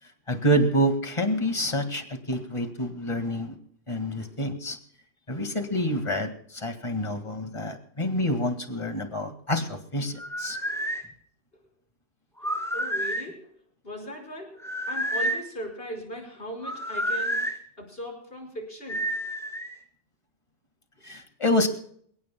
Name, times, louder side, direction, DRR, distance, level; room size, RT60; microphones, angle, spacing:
voice 1, 0.3-3.6 3.9-4.8 5.3-10.6 21.0-21.7, equal, 25° left, 6 dB, 2.0 m, -27 dB
sound 1, 10.2-11.0 12.4-13.3 14.6-15.5 16.6-17.6 18.9-19.8, equal, ahead, 2.6 m, -29 dB
voice 2, 12.7-13.5 13.8-14.6 14.9-17.4 17.8-19.0, equal, 50° left, 1 dB, 5.6 m, -38 dB
27.5 x 17.0 x 2.3 m, 0.63 s
omnidirectional pair, 1.2 m